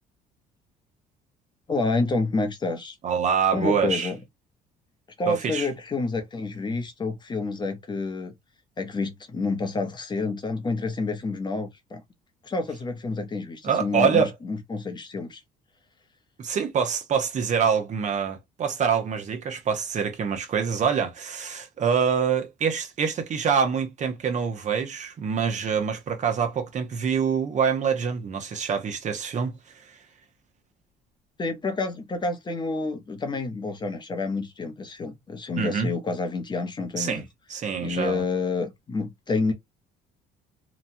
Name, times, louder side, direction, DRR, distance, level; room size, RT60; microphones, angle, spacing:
voice 1, 1.7-2.9 3.5-4.2 5.2-8.3 8.8-12.0 12.4-15.4 31.4-37.2 37.8-39.5, left 3 dB, 25° left, 0.7 m, -28 dB
voice 2, 3.0-4.1 5.3-5.7 13.6-14.3 16.4-29.5 29.9-30.0 35.6-35.9 37.0-37.2 37.5-38.2, right 6 dB, 45° right, 0.8 m, -25 dB
2.9 x 2.2 x 2.6 m
cardioid pair, 110°, 17 cm